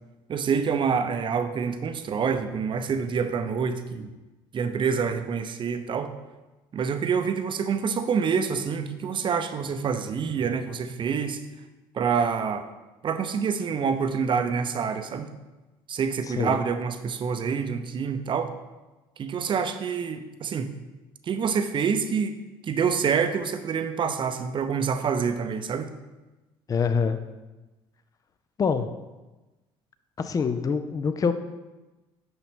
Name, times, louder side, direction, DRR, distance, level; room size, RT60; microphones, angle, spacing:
voice 1, 0.3-4.1 4.5-6.1 6.7-11.4 11.9-12.7 13.0-15.3 15.9-18.6 19.2-20.7 21.2-22.4 22.6-25.9, right 6 dB, 40° right, 8 dB, 0.6 m, -27 dB
voice 2, 26.7-27.2 28.6-28.9 30.2-31.3, left 5 dB, 30° left, 10 dB, 0.5 m, -25 dB
5.9 x 5.5 x 3.5 m, 1.1 s
supercardioid pair, 70°, 12 cm